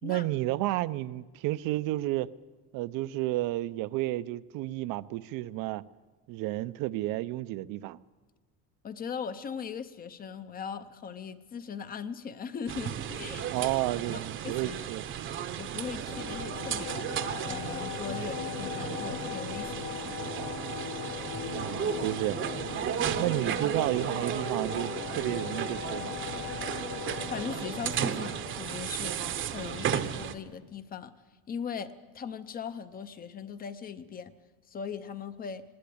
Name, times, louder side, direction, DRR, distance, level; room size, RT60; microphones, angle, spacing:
voice 1, 0.0-2.3 2.7-5.8 6.3-8.0 13.5-15.0 21.5-22.4 23.2-26.2, right 17 dB, 65° right, 15 dB, 0.6 m, -31 dB
voice 2, 8.8-13.5 13.9-14.9 15.6-17.1 17.5-20.3 27.3-29.2 29.5-31.1 31.5-34.3 34.7-35.6, left 7 dB, 25° left, 12 dB, 0.6 m, -39 dB
sound 1, 12.7-30.3, right 9 dB, 35° right, 0.8 m, -34 dB
sound 2, 16.1-29.6, left 10 dB, 55° left, 1.0 m, -39 dB
20.0 x 17.5 x 8.5 m, 1.3 s
cardioid pair, 175°, 36 cm